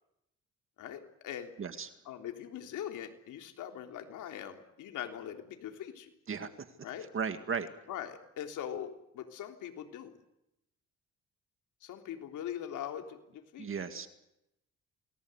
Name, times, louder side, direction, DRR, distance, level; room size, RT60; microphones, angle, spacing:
voice 1, 0.8-1.5 2.1-6.1 6.8-7.1 7.9-10.1 11.8-14.1, left 10 dB, 85° left, 4 dB, 3.6 m, -42 dB
voice 2, 1.6-1.9 6.3-6.5 7.1-7.7 13.6-14.1, right 6 dB, 45° right, 9 dB, 2.0 m, -35 dB
28.5 x 20.0 x 8.1 m, 0.85 s
cardioid pair, 90°, 30 cm